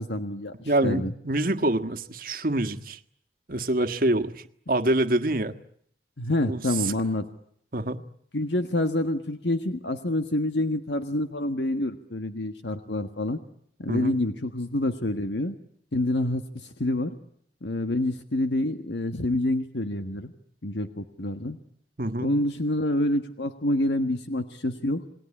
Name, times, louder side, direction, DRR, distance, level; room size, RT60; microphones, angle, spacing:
voice 1, 0.0-1.1 6.2-7.3 8.3-13.4 13.8-15.6 15.9-17.2 17.6-20.3 20.6-21.6 22.2-25.0, left 1 dB, 80° left, 8 dB, 1.6 m, -27 dB
voice 2, 0.6-3.0 3.5-4.3 4.7-5.5 6.5-6.6 7.7-8.0 13.9-14.2 22.0-22.3, right 1 dB, 55° right, 8 dB, 1.5 m, -25 dB
28.5 x 20.0 x 9.9 m, 0.69 s
head